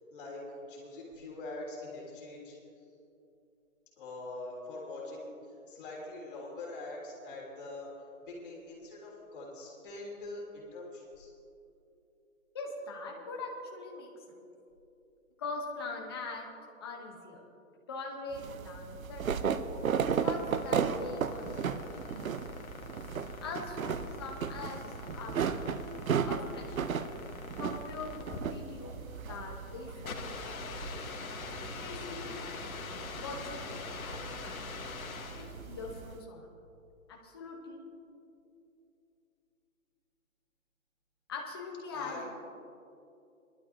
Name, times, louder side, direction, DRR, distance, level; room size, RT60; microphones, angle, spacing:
voice 1, 0.1-2.6 4.0-7.9 8.3-11.3 21.5-21.6 41.9-42.2, left 2 dB, 40° left, -4 dB, 3.5 m, -43 dB
voice 2, 12.5-14.1 15.4-16.5 16.8-17.4 17.9-19.5 20.2-22.5 23.4-24.8 25.1-25.7 26.2-26.8 27.6-30.7 31.8-34.6 35.3-36.5 37.1-37.8 41.3-42.3, left 3 dB, 20° left, 0 dB, 1.0 m, -42 dB
sound 1, 18.3-36.2, right 6 dB, 75° right, 0.8 m, -36 dB
sound 2, 19.7-35.6, left 5 dB, 80° left, 1.5 m, -44 dB
21.0 x 12.0 x 2.8 m, 2.7 s
hypercardioid pair, 170°, 41 cm